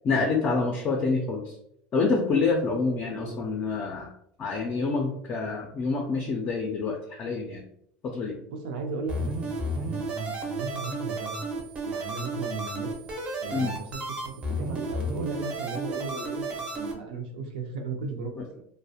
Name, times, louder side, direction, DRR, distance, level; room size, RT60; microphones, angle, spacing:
voice 1, 0.0-1.6 1.9-4.1 4.4-7.6 8.0-8.4 13.5-13.7, left 4 dB, 30° left, 1 dB, 0.3 m, -27 dB
voice 2, 8.5-12.9 13.4-18.6, right 3 dB, 90° right, 4 dB, 0.5 m, -36 dB
sound 1, 9.1-16.9, right 2 dB, 20° right, 0.5 m, -33 dB
2.3 x 2.0 x 2.7 m, 0.72 s
supercardioid pair, 145°, 5 cm